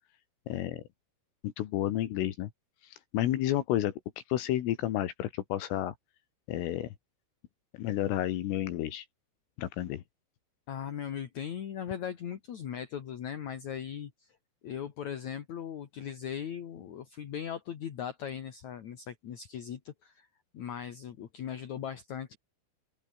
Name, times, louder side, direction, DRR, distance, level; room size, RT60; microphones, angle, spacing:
voice 1, 0.5-0.8 1.4-2.5 2.8-4.0 4.3-6.0 6.5-6.9 7.8-9.1 9.6-10.0, left 13 dB, 80° left, 4.4 m, -31 dB
voice 2, 10.7-14.4 14.6-20.3 20.5-22.4, left 8 dB, 55° left, 2.2 m, -39 dB
open air
omnidirectional pair, 5.9 m